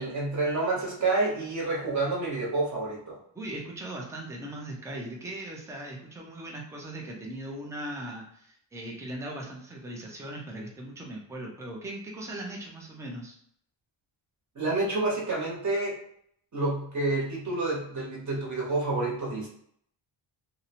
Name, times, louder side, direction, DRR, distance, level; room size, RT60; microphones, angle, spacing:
voice 1, 0.0-3.2 14.5-16.0 16.5-19.5, right 2 dB, 35° right, -3 dB, 0.9 m, -28 dB
voice 2, 3.3-13.4, right 1 dB, 5° right, -1 dB, 0.3 m, -39 dB
2.7 x 2.0 x 2.8 m, 0.67 s
wide cardioid pair, 150°, 48 cm